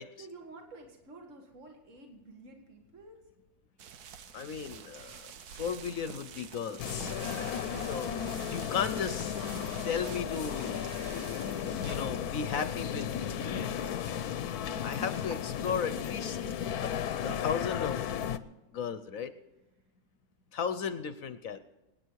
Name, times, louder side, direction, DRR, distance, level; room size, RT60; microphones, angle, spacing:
voice 1, 0.2-3.3 7.2-7.9, right 3 dB, 55° right, 3 dB, 2.2 m, -51 dB
sound 1, 3.8-12.0, right 7 dB, 90° right, 1.5 m, -48 dB
voice 2, 4.3-5.2 5.6-7.1 7.9-8.1 8.5-9.3 9.8-10.8 11.7-13.7 14.8-16.4 16.8-16.9 17.2-18.0 18.7-19.3 20.5-21.6, left 7 dB, 65° left, 11 dB, 1.1 m, -35 dB
sound 2, 4.7-18.3, right 3 dB, 70° right, 2.1 m, -58 dB
sound 3, 6.8-18.4, left 9 dB, 85° left, 1.2 m, -34 dB
25.0 x 9.7 x 4.7 m, 1.0 s
omnidirectional pair, 1.6 m